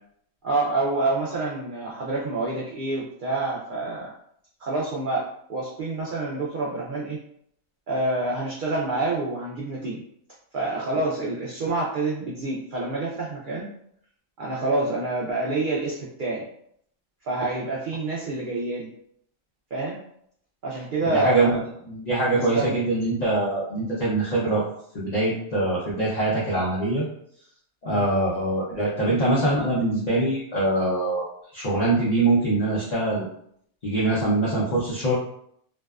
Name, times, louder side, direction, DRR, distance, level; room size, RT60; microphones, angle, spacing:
voice 1, 0.4-4.1 4.6-5.2 5.5-7.2 7.9-10.0 10.5-13.7 14.4-16.4 17.2-18.9 19.7-20.0 20.6-21.6 22.3-22.8 27.9-28.0, right 2 dB, 90° right, -4 dB, 0.4 m, -27 dB
voice 2, 21.1-21.6 21.9-24.6 24.9-27.0 27.8-31.2 31.5-33.2 33.8-35.1, right 2 dB, 45° left, -8 dB, 0.6 m, -23 dB
2.6 x 2.1 x 2.3 m, 0.69 s
omnidirectional pair, 1.4 m